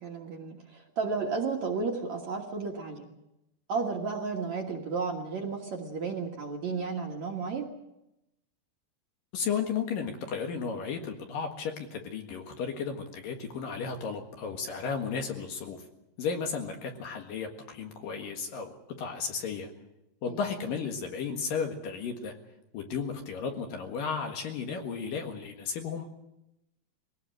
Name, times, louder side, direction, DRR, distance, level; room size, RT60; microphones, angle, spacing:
voice 1, 0.0-3.1 3.7-7.7 20.3-20.4, right 4 dB, 55° right, 1 dB, 2.4 m, -33 dB
voice 2, 9.3-15.8 16.2-19.7 20.2-22.3 22.7-26.1, left 6 dB, 60° left, 3 dB, 3.1 m, -34 dB
22.5 x 18.0 x 7.7 m, 0.89 s
omnidirectional pair, 4.9 m